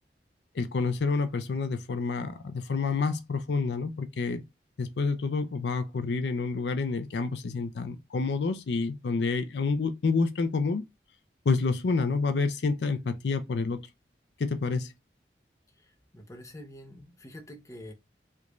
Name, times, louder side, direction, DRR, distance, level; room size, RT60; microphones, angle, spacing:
voice 1, 0.5-4.4 4.8-10.8 11.5-13.9 14.4-14.9, left 4 dB, 80° left, 0.5 m, -28 dB
voice 2, 15.8-17.9, left 1 dB, 15° left, 0.6 m, -46 dB
3.3 x 2.5 x 3.0 m
head